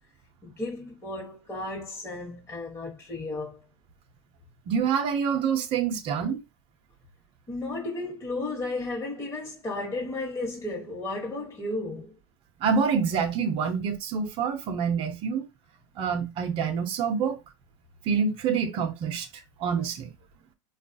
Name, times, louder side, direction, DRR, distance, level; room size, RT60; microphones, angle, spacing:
voice 1, 0.4-3.6 7.5-12.1, left 2 dB, 20° left, 1.1 m, -34 dB
voice 2, 4.7-6.4 12.6-15.5 16.0-17.4 18.1-19.3 19.6-20.1, right 6 dB, 40° right, 0.7 m, -26 dB
3.6 x 2.3 x 2.6 m
hypercardioid pair, 110°, 14 cm